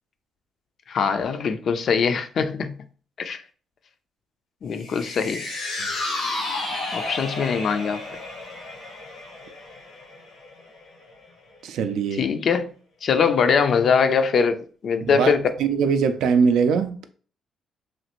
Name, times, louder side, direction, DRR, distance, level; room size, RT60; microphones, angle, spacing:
voice 1, 0.9-2.8 3.2-3.4 4.6-5.5 6.9-8.0 12.2-12.7 13.0-15.5, left 6 dB, 60° left, 0.4 m, -22 dB
sound 1, 4.8-11.2 11.6-11.7, left 2 dB, 90° left, 1.0 m, -32 dB
voice 2, 11.6-12.3 15.0-17.1, right 6 dB, 80° right, 0.4 m, -22 dB
3.1 x 2.4 x 2.9 m
cardioid pair, 90°, 0 cm